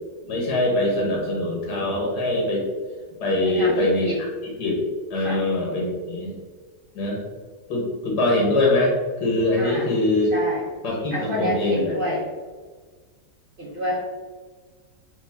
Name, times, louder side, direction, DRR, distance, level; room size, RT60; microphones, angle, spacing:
voice 1, 0.3-2.7 3.2-4.3 4.6-4.8 5.1-6.3 6.9-7.2 7.7-8.9 9.2-10.3 10.8-11.9, left 2 dB, 80° left, -3 dB, 1.7 m, -23 dB
voice 2, 3.5-4.2 5.2-5.4 9.6-9.9 10.3-10.6 11.1-12.3 13.6-14.0, equal, 45° right, -4 dB, 0.7 m, -28 dB
4.8 x 3.3 x 3.4 m, 1.4 s
omnidirectional pair, 1.7 m